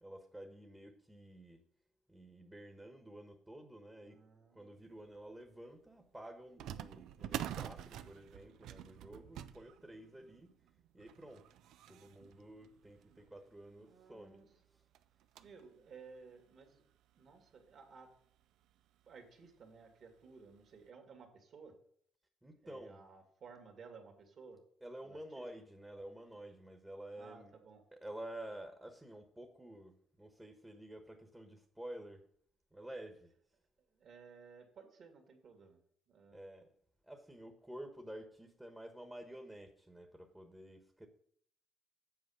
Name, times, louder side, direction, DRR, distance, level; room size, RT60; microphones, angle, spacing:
voice 1, 0.0-1.7 2.1-4.2 4.5-10.5 10.9-11.5 11.9-14.4 14.7-14.8 22.4-23.0 24.8-27.5 27.9-32.3 32.7-33.3 36.3-36.8 37.0-41.1, right 1 dB, 10° right, 1.2 m, -51 dB
voice 2, 4.0-4.8 13.8-14.5 15.4-18.1 19.1-21.7 22.6-24.6 25.0-25.5 27.2-27.8 33.9-35.8 36.1-36.5, right 5 dB, 55° right, 2.3 m, -57 dB
sound 1, 5.1-5.2 6.6-13.5 14.1-14.2 14.4-14.5 14.9-15.7 16.2-16.3 17.1-17.2 17.6-17.7 19.1-19.3 19.8-19.9 20.5-20.6, right 11 dB, 80° right, 0.4 m, -47 dB
8.1 x 4.6 x 7.0 m
cardioid pair, 90°, 0 cm